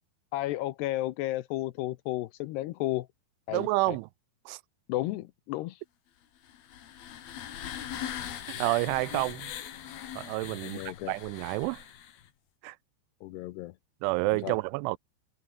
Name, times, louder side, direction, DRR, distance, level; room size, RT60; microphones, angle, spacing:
voice 1, 0.3-3.1 3.5-4.0 4.9-5.8 10.6-11.1 13.2-13.7 14.4-14.6, left 16 dB, 80° left, 2.6 m, -33 dB
voice 2, 3.5-4.1 4.5-4.6 8.5-9.5 10.2-11.8 12.6-12.8 14.0-15.0, right 24 dB, 90° right, 3.0 m, -29 dB
sound 1, 6.4-12.3, left 10 dB, 60° left, 3.7 m, -41 dB
omnidirectional pair, 5.4 m